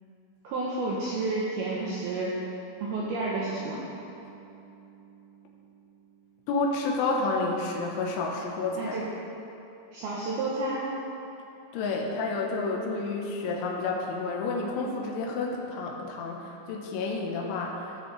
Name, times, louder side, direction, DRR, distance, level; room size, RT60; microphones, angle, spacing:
voice 1, 0.4-2.4 2.8-3.8 8.7-9.1 9.9-11.0, right 2 dB, 80° right, -6 dB, 2.2 m, -30 dB
Bass guitar, 3.0-7.1, right 3 dB, 65° right, 3.0 m, -51 dB
voice 2, 6.5-9.0 11.7-17.9, left 3 dB, 80° left, -1 dB, 3.4 m, -30 dB
16.0 x 6.6 x 3.3 m, 2.8 s
omnidirectional pair, 5.7 m